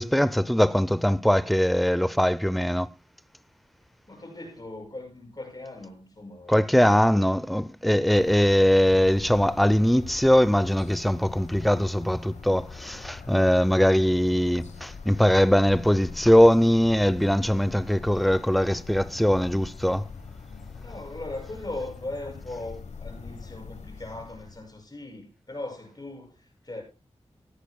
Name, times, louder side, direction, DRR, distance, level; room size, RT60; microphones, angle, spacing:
voice 1, 0.0-2.9 6.5-20.0, equal, ahead, 0.6 m, -21 dB
voice 2, 4.1-7.2 20.8-26.8, left 2 dB, 35° left, 6.6 m, -39 dB
sound 1, 8.1-24.8, left 5 dB, 85° left, 1.1 m, -42 dB
17.0 x 13.5 x 2.2 m
cardioid pair, 55°, 11 cm